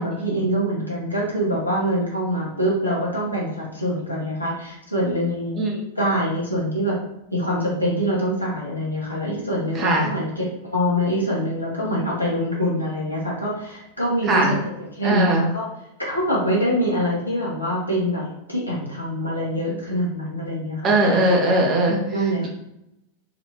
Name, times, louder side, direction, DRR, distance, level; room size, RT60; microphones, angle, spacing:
voice 1, 0.0-5.6 5.9-7.0 7.3-14.5 14.9-15.6 16.0-21.2 22.1-22.5, equal, 85° left, -5 dB, 1.3 m, -24 dB
voice 2, 9.7-10.1 14.3-14.6 15.0-15.4 20.8-22.0, right 1 dB, 30° right, -1 dB, 1.1 m, -19 dB
4.1 x 2.9 x 2.9 m, 0.85 s
figure-of-eight pair, 90°, 0 cm